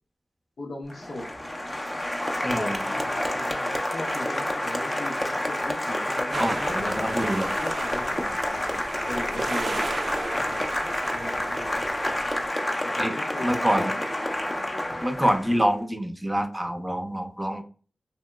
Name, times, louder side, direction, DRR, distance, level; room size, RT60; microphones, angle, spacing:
voice 1, 0.6-1.3 2.5-7.3 7.6-9.8 10.3-10.8 11.1-11.8 12.8-14.0, left 1 dB, 85° left, -2 dB, 1.0 m, -38 dB
Applause, 0.9-15.7, left 1 dB, 30° left, 0.6 m, -29 dB
voice 2, 2.4-2.9 6.4-7.5 13.0-13.1 13.4-13.9 15.0-17.6, equal, 15° right, 6 dB, 0.6 m, -26 dB
sound 1, 6.3-12.5, right 3 dB, 60° right, 0.3 m, -35 dB
2.9 x 2.8 x 2.2 m, 0.38 s
cardioid pair, 45°, 0 cm